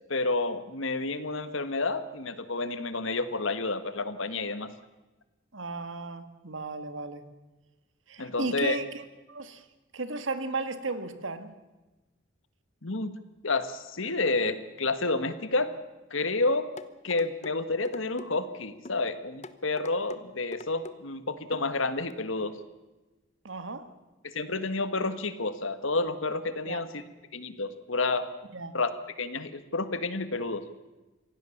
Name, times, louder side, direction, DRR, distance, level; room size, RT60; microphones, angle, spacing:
voice 1, 0.1-4.7 8.2-8.8 12.8-13.1 13.4-15.7 16.1-16.7 17.0-22.5 24.2-26.9 27.3-28.3 28.7-30.6, left 3 dB, 80° left, 11 dB, 1.6 m, -30 dB
voice 2, 5.5-7.3 8.1-9.0 9.3-9.6 9.9-11.6 23.4-23.9 26.6-26.8 28.5-28.7, right 3 dB, 75° right, 10 dB, 1.8 m, -35 dB
sound 1, 16.8-17.5 17.8-18.3 18.8-19.0 19.4-20.2 20.5-21.0 21.5-21.7 22.1-22.2, left 2 dB, 35° left, 0.9 m, -43 dB
25.5 x 17.0 x 7.2 m, 1.1 s
head